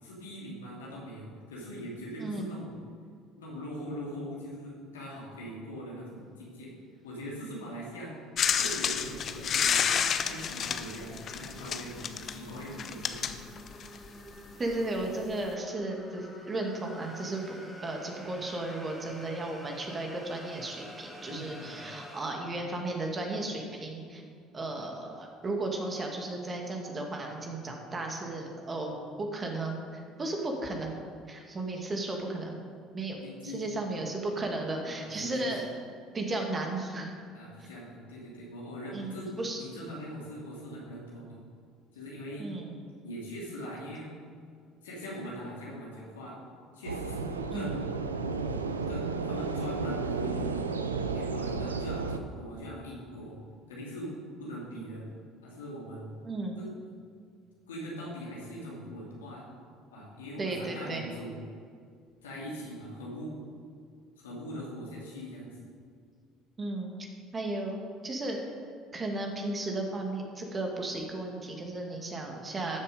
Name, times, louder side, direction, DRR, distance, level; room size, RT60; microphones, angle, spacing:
voice 1, 0.0-2.7 3.4-6.7 7.0-8.1 8.5-10.0 10.2-13.3 21.3-21.8 33.2-33.6 34.9-35.7 37.3-39.3 39.6-41.4 41.9-42.5 43.0-44.1 44.8-46.4 46.7-48.0 48.9-50.6 51.1-53.4 53.7-54.1 54.4-55.1 55.4-56.2 56.6-56.7 57.7-59.5 59.9-61.4 62.2-63.3 64.2-65.6, equal, 80° left, -4 dB, 2.8 m, -41 dB
sound 1, 8.4-14.1 15.0-15.1, left 8 dB, 45° left, 0.7 m, -30 dB
sound 2, 9.2-22.2, equal, ahead, 2.3 m, -47 dB
voice 2, 14.6-17.6 17.8-24.2 24.5-30.9 31.3-32.6 32.9-33.2 33.4-35.7 36.1-37.1 37.6-37.7 38.9-39.1 39.4-39.6 42.4-42.8 47.5-47.7 56.2-56.6 60.4-61.1 66.6-67.1 67.3-68.4 68.9-72.8, right 2 dB, 30° right, 1 dB, 2.2 m, -34 dB
sound 3, 46.8-52.2, right 4 dB, 90° right, 0.5 m, -33 dB
13.5 x 7.0 x 5.3 m, 2.2 s
hypercardioid pair, 60°, 0 cm